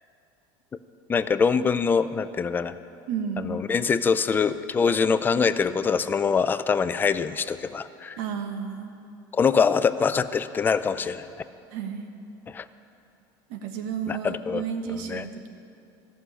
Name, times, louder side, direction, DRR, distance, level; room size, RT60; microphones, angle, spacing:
voice 1, 1.1-2.7 3.4-8.2 9.3-11.3 12.5-12.6 14.1-14.6 14.9-15.3, left 5 dB, 20° left, 12 dB, 0.4 m, -24 dB
voice 2, 3.1-3.6 8.2-8.9 11.7-12.1 13.5-15.5, right 7 dB, 75° right, 6 dB, 1.3 m, -32 dB
14.0 x 6.4 x 10.0 m, 2.7 s
cardioid pair, 135°, 11 cm